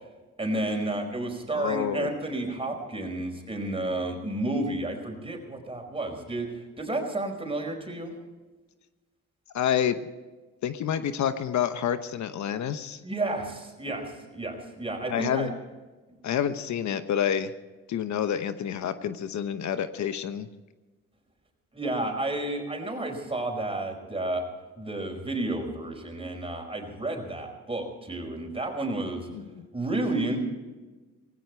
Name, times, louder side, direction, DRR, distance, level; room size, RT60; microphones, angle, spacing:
voice 1, 0.4-8.1 13.0-15.5 16.1-16.2 21.7-24.4 24.8-29.3 29.7-30.4, right 2 dB, 20° right, 3 dB, 4.9 m, -31 dB
voice 2, 1.5-2.1 9.5-10.0 10.6-13.0 15.1-15.5 16.2-17.5 17.9-20.5, left 9 dB, 70° left, 11 dB, 1.0 m, -28 dB
18.5 x 16.5 x 4.6 m, 1.2 s
cardioid pair, 90°, 30 cm